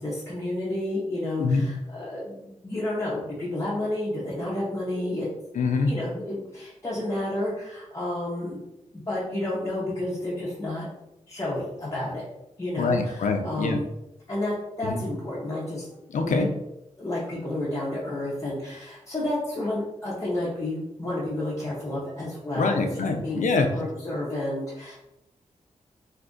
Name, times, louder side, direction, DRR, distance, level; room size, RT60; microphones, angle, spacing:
voice 1, 0.0-5.3 5.9-8.6 8.9-10.9 11.3-12.3 12.6-13.8 14.3-15.9 16.1-16.5 17.0-22.9 23.2-23.4 23.7-24.9, left 1 dB, 25° left, -7 dB, 0.6 m, -30 dB
voice 2, 5.5-5.9 12.8-13.8 14.8-15.0 16.1-16.5 22.6-23.7, left 4 dB, 75° left, 4 dB, 0.4 m, -24 dB
2.5 x 2.4 x 3.7 m, 0.89 s
wide cardioid pair, 155°, 13 cm